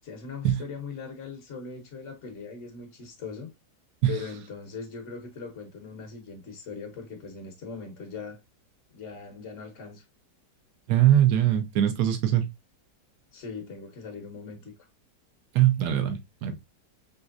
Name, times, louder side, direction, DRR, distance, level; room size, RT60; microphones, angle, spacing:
voice 1, 0.0-3.5 4.1-8.4 8.9-10.0 13.3-14.9, left 5 dB, 50° left, 1.1 m, -40 dB
voice 2, 10.9-12.4 15.5-16.5, right 11 dB, 65° right, 1.1 m, -22 dB
5.2 x 3.1 x 2.4 m
omnidirectional pair, 1.9 m